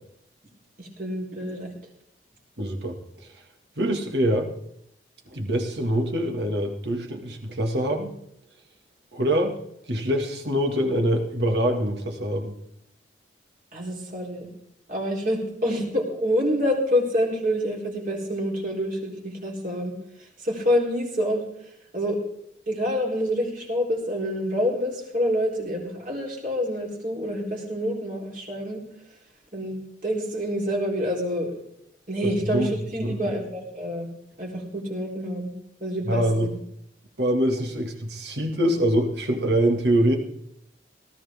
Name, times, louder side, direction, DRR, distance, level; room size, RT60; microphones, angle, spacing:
voice 1, 0.8-1.7 13.7-14.5 14.9-21.4 21.9-22.2 22.7-28.8 29.5-31.6 32.1-34.1 34.4-35.5 35.8-36.5, equal, 45° right, -1 dB, 3.9 m, -27 dB
voice 2, 2.6-3.4 3.8-4.5 5.3-8.1 9.1-9.6 9.9-12.6 32.2-32.7 33.0-33.3 36.1-36.5 37.2-40.2, right 1 dB, 65° right, 3 dB, 2.2 m, -24 dB
18.0 x 14.0 x 3.7 m, 0.74 s
head